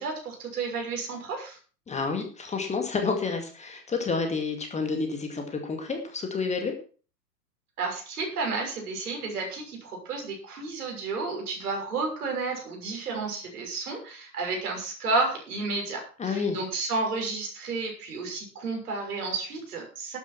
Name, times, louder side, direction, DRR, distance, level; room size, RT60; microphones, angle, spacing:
voice 1, 0.0-1.6 7.8-20.2, right 3 dB, 60° right, 1 dB, 6.4 m, -31 dB
voice 2, 1.9-6.7 16.2-16.6, left 4 dB, 15° left, 4 dB, 2.1 m, -29 dB
12.0 x 9.4 x 5.9 m, 0.39 s
figure-of-eight pair, 100°, 50 cm